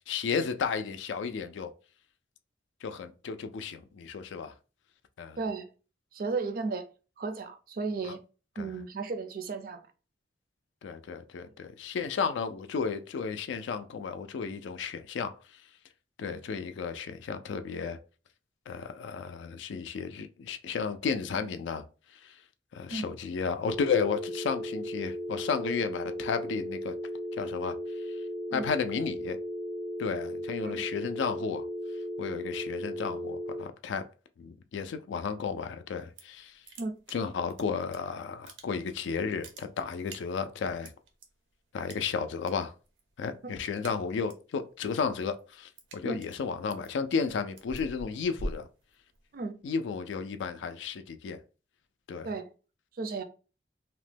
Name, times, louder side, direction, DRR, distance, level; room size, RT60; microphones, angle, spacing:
voice 1, 0.1-1.7 2.8-4.5 5.2-5.4 8.0-8.2 8.6-8.7 10.8-15.6 16.2-18.0 18.7-21.8 22.1-22.4 22.7-26.9 27.3-28.2 28.5-29.4 30.0-31.7 32.2-34.1 34.4-36.6 37.1-40.9 41.7-42.7 43.2-48.7 49.6-51.4 52.1-52.3, left 5 dB, 80° left, 0.3 m, -33 dB
voice 2, 5.4-5.7 6.1-6.9 7.2-8.2 8.6-9.9 22.9-23.1 28.5-28.7 30.6-30.8 36.8-36.9 46.0-46.2 49.3-49.6 52.2-52.5 52.9-53.2, right 4 dB, 50° right, 0.4 m, -34 dB
sound 1, 23.6-33.6, equal, 10° left, 0.5 m, -36 dB
sound 2, 35.9-36.4 36.6-38.0 38.3-39.0 39.3-41.3 41.9-42.5 42.8-43.1 43.4-44.5 44.9-49.4, right 1 dB, 90° right, 0.6 m, -44 dB
2.9 x 2.1 x 3.2 m
head